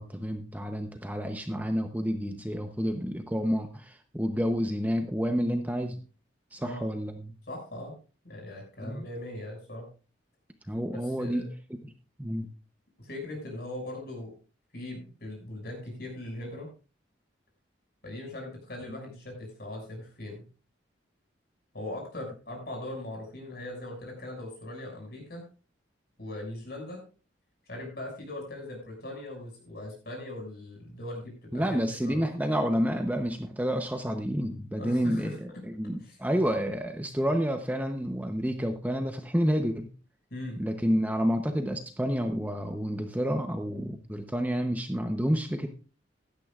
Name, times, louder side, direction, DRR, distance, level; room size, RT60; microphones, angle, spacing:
voice 1, 0.0-6.0 6.5-7.3 8.8-9.1 10.7-11.9 12.2-12.5 31.5-39.9 40.6-45.7, equal, 10° right, 6 dB, 0.8 m, -29 dB
voice 2, 7.5-7.9 8.2-9.9 11.0-11.5 13.0-14.3 14.7-16.7 18.0-20.4 21.7-25.4 26.2-27.0 27.6-32.3 34.8-35.6 36.0-36.2 40.3-40.6, left 1 dB, 55° left, 2 dB, 6.3 m, -40 dB
16.0 x 12.0 x 2.5 m, 0.35 s
head